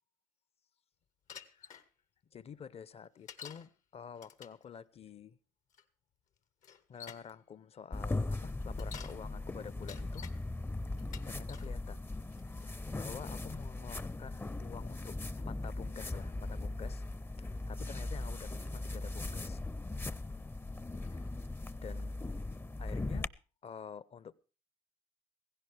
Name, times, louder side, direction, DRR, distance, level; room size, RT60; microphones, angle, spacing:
Bicycle, 1.3-1.8 3.3-3.7 4.2-4.6 5.7-5.8 6.6-7.3 8.6-9.2 9.7-10.4 11.0-11.7 12.3-12.7, left 7 dB, 70° left, 1.1 m, -49 dB
voice 1, 2.3-5.4 6.9-10.3 11.3-12.1 12.6-17.0 17.4-19.6 21.1-21.3 21.8-22.2 22.8-23.3 23.6-24.3, left 7 dB, 50° left, 0.7 m, -49 dB
sound 1, 7.9-23.3, left 2 dB, 15° left, 0.6 m, -39 dB
16.0 x 16.0 x 3.4 m
supercardioid pair, 60°, 13 cm